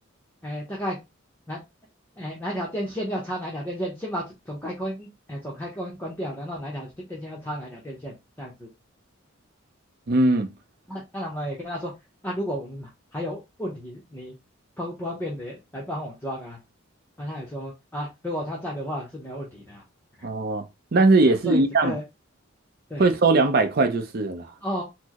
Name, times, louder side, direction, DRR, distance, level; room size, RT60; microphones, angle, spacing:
voice 1, 0.4-1.0 1.5-1.6 2.2-8.7 10.9-11.9 12.2-14.3 14.8-16.6 17.2-19.8 20.2-20.3 21.3-22.0 22.9-23.0 24.6-24.8, equal, 10° left, 0.7 m, -33 dB
voice 2, 10.1-10.5 20.2-20.6 20.9-22.0 23.0-24.5, right 3 dB, 45° right, 0.5 m, -20 dB
4.3 x 2.0 x 2.8 m
head